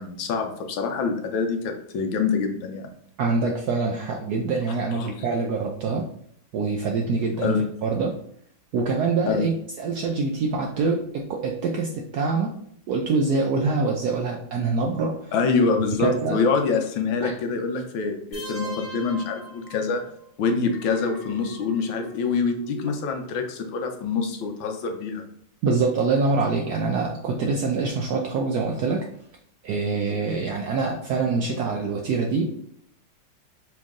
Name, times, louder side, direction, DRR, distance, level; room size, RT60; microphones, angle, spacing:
voice 1, 0.0-2.9 4.9-5.1 7.4-7.6 9.3-9.4 15.3-20.0 20.4-25.3, left 5 dB, 80° left, 5 dB, 1.4 m, -25 dB
voice 2, 3.2-6.0 6.5-7.5 7.8-8.1 8.7-12.5 12.9-15.3 16.0-16.4 17.2-17.3 25.6-29.1 29.6-32.5, right 4 dB, 75° right, 1 dB, 0.9 m, -25 dB
sound 1, 18.3-20.3, right 2 dB, 25° left, 1.7 m, -38 dB
Alarm, 20.6-23.9 24.3-24.6, left 2 dB, 5° left, 1.2 m, -40 dB
4.4 x 3.0 x 3.6 m, 0.66 s
omnidirectional pair, 2.2 m